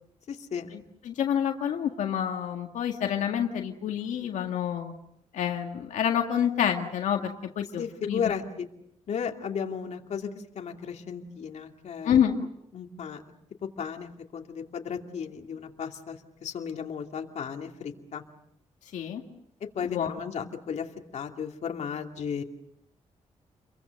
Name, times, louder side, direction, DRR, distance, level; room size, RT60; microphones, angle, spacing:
voice 1, 0.3-0.7 7.8-8.7 9.1-10.3 10.5-12.2 12.7-13.2 13.8-18.2 19.7-20.9 21.1-22.4, left 7 dB, 65° left, 3 dB, 2.5 m, -34 dB
voice 2, 1.0-4.9 5.3-8.3 12.0-12.4 18.9-19.2 19.8-20.1, left 9 dB, 90° left, 3 dB, 1.9 m, -28 dB
29.5 x 23.0 x 6.6 m, 0.76 s
cardioid pair, 105°, 12 cm